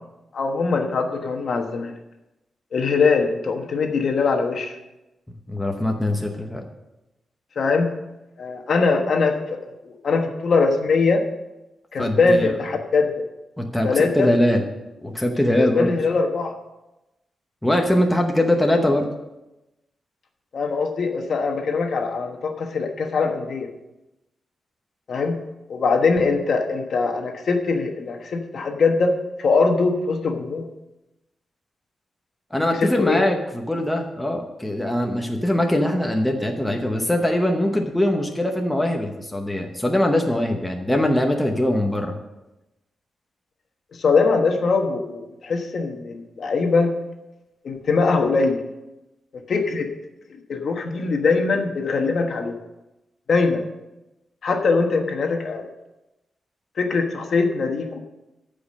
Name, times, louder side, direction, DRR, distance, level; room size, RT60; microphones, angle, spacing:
voice 1, 0.3-1.9 2.7-4.7 7.6-7.9 8.4-9.6 9.8-11.2 11.9-13.1 13.8-14.3 15.6-16.5 20.5-23.7 25.1-25.4 25.7-30.7 32.8-33.2 44.0-46.9 47.6-48.6 49.3-49.9 50.5-52.6 53.3-53.6 54.4-55.7 56.8-58.0, left 4 dB, 50° left, 4 dB, 1.3 m, -22 dB
voice 2, 5.5-6.6 12.0-12.5 13.6-14.6 15.0-15.9 17.6-19.1 32.5-42.2, left 1 dB, 5° left, 2 dB, 0.8 m, -22 dB
14.0 x 5.2 x 6.5 m, 0.98 s
wide cardioid pair, 175°, 0 cm